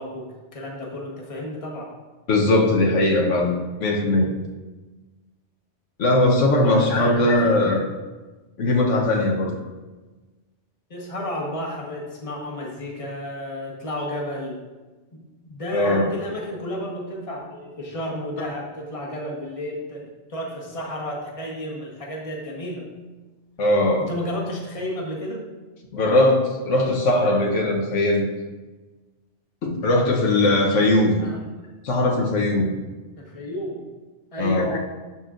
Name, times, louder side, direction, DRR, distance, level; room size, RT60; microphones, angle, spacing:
voice 1, 0.0-1.9 6.6-7.7 10.9-14.6 15.1-22.9 24.1-25.4 31.2-31.8 33.2-33.8 34.3-34.7, left 1 dB, 30° left, -2 dB, 1.2 m, -32 dB
voice 2, 2.3-4.3 6.0-7.9 8.6-9.5 15.7-16.1 18.4-18.5 23.6-24.1 25.9-28.3 29.6-31.2 31.8-32.7 34.4-34.8, left 1 dB, 85° left, 0 dB, 1.3 m, -20 dB
12.0 x 4.3 x 2.5 m, 1.2 s
omnidirectional pair, 1.2 m